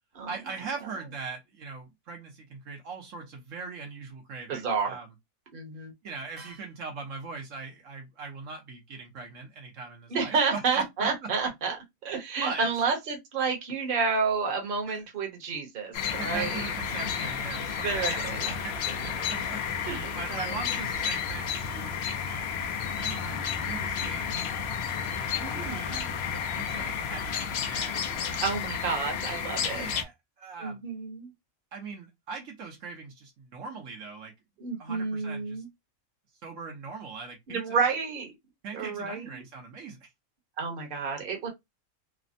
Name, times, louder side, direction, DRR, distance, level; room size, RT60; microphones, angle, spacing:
voice 1, 0.3-5.1 6.0-11.1 12.4-12.7 14.9-15.0 16.2-19.6 20.1-22.0 23.0-24.4 25.2-26.1 26.5-28.3 29.7-30.8 31.7-34.3 34.8-35.6 36.4-37.8 38.6-40.1, right 4 dB, 70° right, 1.2 m, -40 dB
voice 2, 4.5-5.0 5.5-5.9 10.1-16.7 17.8-18.5 19.2-19.3 19.9-20.5 25.4-26.3 28.4-29.9 30.6-31.3 34.6-35.7 37.5-38.3 38.7-39.4 40.6-41.5, right 5 dB, 45° right, 1.0 m, -30 dB
sound 1, 15.9-30.0, left 7 dB, 65° left, 0.7 m, -31 dB
3.3 x 2.1 x 2.5 m
omnidirectional pair, 1.4 m